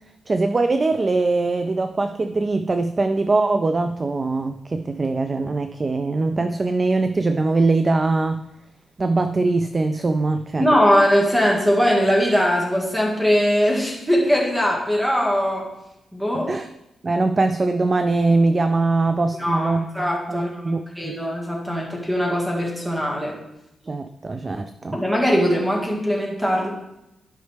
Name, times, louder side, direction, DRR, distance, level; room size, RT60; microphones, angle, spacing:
voice 1, 0.3-8.4 9.0-10.7 16.3-16.7 17.0-19.9 20.3-21.1 23.8-25.0, right 3 dB, 25° right, 8 dB, 0.3 m, -22 dB
voice 2, 10.6-15.7 16.1-16.5 19.4-23.4 24.9-26.7, equal, 5° right, -1 dB, 1.7 m, -21 dB
12.5 x 5.5 x 3.4 m, 0.87 s
wide cardioid pair, 170°, 0 cm